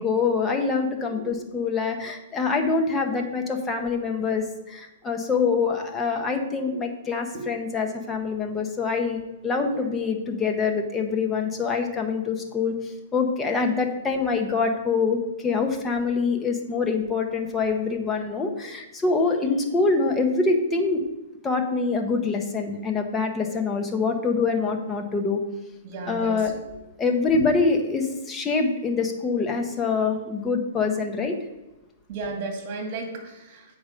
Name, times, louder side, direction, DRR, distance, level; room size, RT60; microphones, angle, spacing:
voice 1, 0.0-15.2 15.4-21.0 21.4-25.4 26.1-26.6 27.0-31.4, left 4 dB, 15° left, 3 dB, 1.0 m, -25 dB
voice 2, 9.5-9.8 25.8-26.5 32.1-33.8, right 3 dB, 40° right, 2 dB, 2.1 m, -35 dB
8.1 x 4.8 x 5.1 m, 1.0 s
hypercardioid pair, 150°, 0 cm